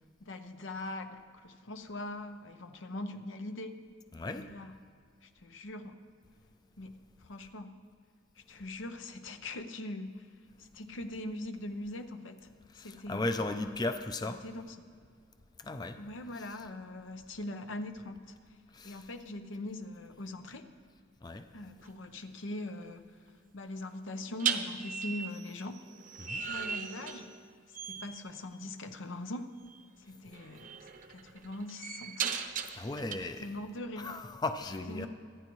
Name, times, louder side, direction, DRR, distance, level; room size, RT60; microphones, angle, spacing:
voice 1, 0.2-3.8 4.3-4.7 5.2-6.0 6.8-7.0 7.2-7.7 8.4-10.3 10.6-12.5 12.8-13.7 14.3-14.8 16.0-18.4 18.8-20.7 21.5-23.0 23.5-25.8 26.5-27.3 27.8-29.6 30.1-30.7 31.1-32.3 33.4-34.2 34.9-35.1, left 1 dB, 80° left, 8 dB, 0.8 m, -41 dB
voice 2, 4.1-4.5 12.7-14.4 15.6-16.0 16.3-16.6 18.7-19.1 21.2-21.4 26.2-26.4 32.8-33.5 34.0-35.1, left 2 dB, 20° left, 8 dB, 0.4 m, -36 dB
sound 1, 21.8-22.0 24.4-27.5 27.7-28.2 29.7-29.8 30.3-33.1, right 6 dB, 45° right, 0.7 m, -37 dB
25.0 x 9.6 x 3.1 m, 2.2 s
head